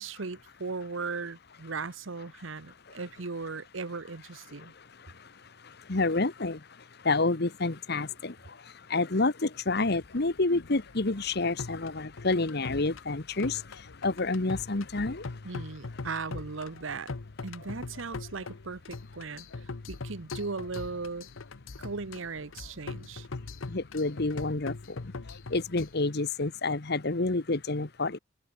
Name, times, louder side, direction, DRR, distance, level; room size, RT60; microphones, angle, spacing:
voice 1, 0.0-4.7 15.4-17.1 17.4-19.5 19.9-21.3 21.8-23.3, right 4 dB, 75° right, 1.0 m, -37 dB
voice 2, 2.3-3.0 4.4-16.1 23.3-28.2, left 3 dB, 55° left, 1.2 m, -30 dB
sound 1, 9.7-26.0, left 3 dB, 80° left, 0.9 m, -42 dB
head